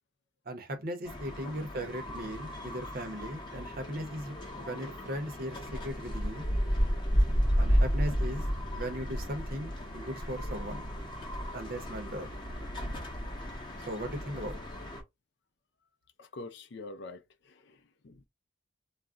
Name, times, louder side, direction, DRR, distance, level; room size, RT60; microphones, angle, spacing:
voice 1, 0.5-6.5 7.6-8.4 8.7-10.9 11.5-12.3 13.9-14.6, equal, 50° right, 0.7 m, -38 dB
sound 1, 1.0-15.0, equal, 25° left, 0.8 m, -33 dB
voice 2, 16.2-18.3, left 2 dB, 60° left, 0.4 m, -46 dB
2.4 x 2.1 x 3.5 m
head